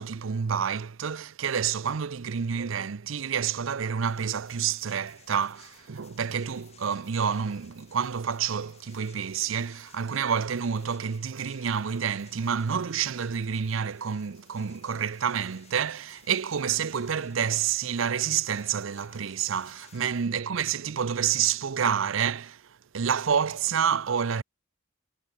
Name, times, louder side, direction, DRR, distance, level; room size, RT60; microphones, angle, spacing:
voice 1, 0.0-24.4, right 7 dB, 75° right, 0.6 m, -28 dB
sound 1, 4.0-20.3, left 7 dB, 30° left, 3.4 m, -58 dB
head